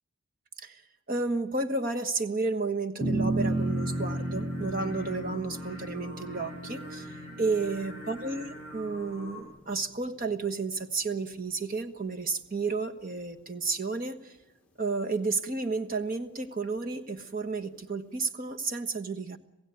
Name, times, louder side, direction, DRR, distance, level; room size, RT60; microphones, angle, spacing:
voice 1, 1.1-14.3 14.8-19.4, right 3 dB, 40° right, 6 dB, 1.4 m, -32 dB
sound 1, 3.0-9.6, right 1 dB, 5° left, 1.8 m, -33 dB
Singing, 3.3-9.4, equal, 70° right, 7.2 m, -44 dB
27.0 x 16.0 x 9.3 m, 0.99 s
head